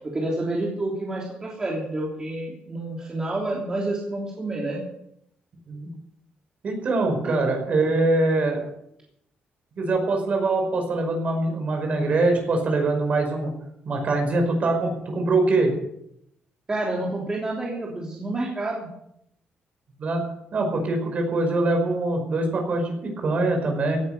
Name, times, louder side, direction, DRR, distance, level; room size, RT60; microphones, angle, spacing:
voice 1, 0.0-4.8 7.2-7.4 16.7-18.9, right 2 dB, 20° right, -3 dB, 3.2 m, -29 dB
voice 2, 6.6-8.6 9.8-13.5 13.9-15.7 20.0-20.2 20.5-24.0, right 2 dB, 45° right, 3 dB, 5.3 m, -23 dB
17.0 x 10.5 x 6.7 m, 0.76 s
cardioid pair, 145°, 3 cm